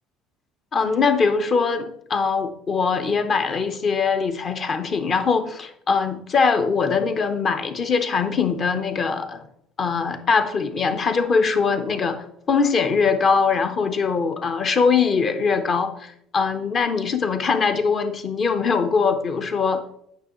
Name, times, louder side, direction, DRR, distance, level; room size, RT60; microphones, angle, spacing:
voice 1, 0.7-9.4 9.8-19.8, left 5 dB, 45° left, 8 dB, 0.9 m, -22 dB
9.3 x 5.7 x 3.1 m, 0.73 s
hypercardioid pair, 60°, 0 cm